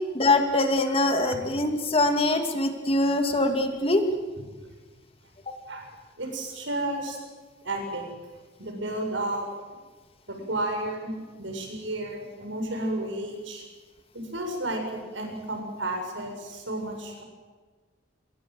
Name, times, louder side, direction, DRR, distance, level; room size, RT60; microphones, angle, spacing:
voice 1, 0.1-4.0 5.5-5.6, left 2 dB, 30° left, 5 dB, 2.4 m, -23 dB
voice 2, 6.2-7.2 7.6-8.0 8.6-9.5 10.3-13.6 14.1-17.2, right 1 dB, 75° right, 3 dB, 7.4 m, -32 dB
28.0 x 22.5 x 8.0 m, 1.4 s
head